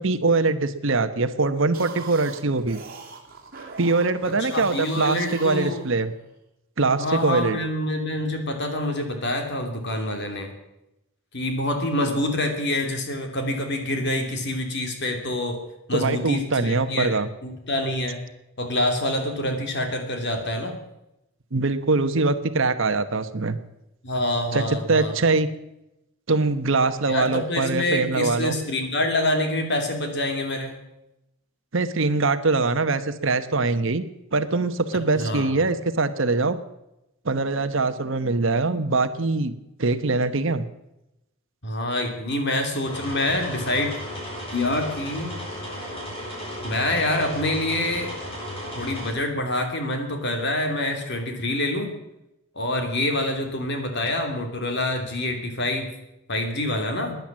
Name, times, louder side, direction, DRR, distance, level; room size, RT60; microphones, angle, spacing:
voice 1, 0.0-2.8 3.8-6.1 6.8-7.6 15.9-17.3 21.5-23.6 24.5-25.5 26.3-28.6 31.7-34.0 34.3-36.6 37.2-39.5 39.8-40.6, right 3 dB, 60° right, 10 dB, 1.0 m, -23 dB
sound 1, 1.6-6.3, right 4 dB, 40° right, 2.8 m, -42 dB
voice 2, 4.4-5.8 7.0-10.5 11.3-15.6 15.9-18.2 18.6-20.8 24.0-25.1 27.1-30.8 35.2-35.6 41.6-43.9 44.5-45.4 46.6-48.1 48.7-51.9 52.5-55.9 56.3-57.1, left 1 dB, 50° left, 4 dB, 2.9 m, -26 dB
sound 2, 42.8-49.1, left 1 dB, 25° left, 5.6 m, -34 dB
16.5 x 10.5 x 7.5 m, 0.89 s
head